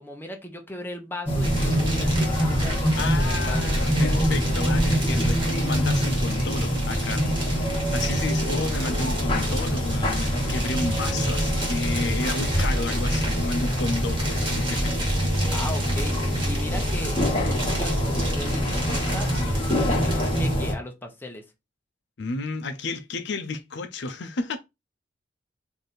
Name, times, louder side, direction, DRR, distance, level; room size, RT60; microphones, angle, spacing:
voice 1, 0.0-3.9 8.2-8.7 15.5-16.2 16.4-17.2 17.5-21.4, left 1 dB, 10° left, 0.8 m, -37 dB
sound 1, 1.3-20.7, equal, 30° left, 1.1 m, -24 dB
sound 2, 1.4-20.5, right 1 dB, 25° right, 1.7 m, -34 dB
voice 2, 2.9-7.6 7.9-14.9 17.0-17.1 22.2-24.6, left 3 dB, 65° left, 0.5 m, -32 dB
3.3 x 2.7 x 4.1 m
head